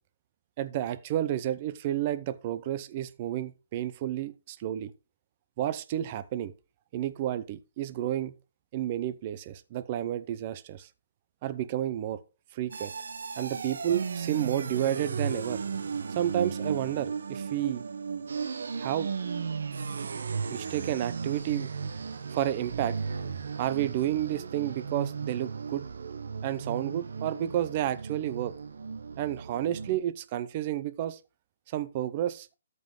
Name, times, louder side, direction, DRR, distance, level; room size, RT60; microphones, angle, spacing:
voice 1, 0.6-4.9 5.6-6.5 6.9-8.3 8.7-10.9 11.4-12.2 12.5-12.9 13.4-15.6 16.1-17.8 18.8-19.1 20.5-21.7 22.3-23.0 23.6-25.8 26.4-28.5 29.2-31.2 31.7-32.5, right 12 dB, 30° right, 0.7 m, -31 dB
sound 1, 12.7-30.0, right 5 dB, 70° right, 1.0 m, -35 dB
13.5 x 5.4 x 3.8 m
hypercardioid pair, 165°, 0 cm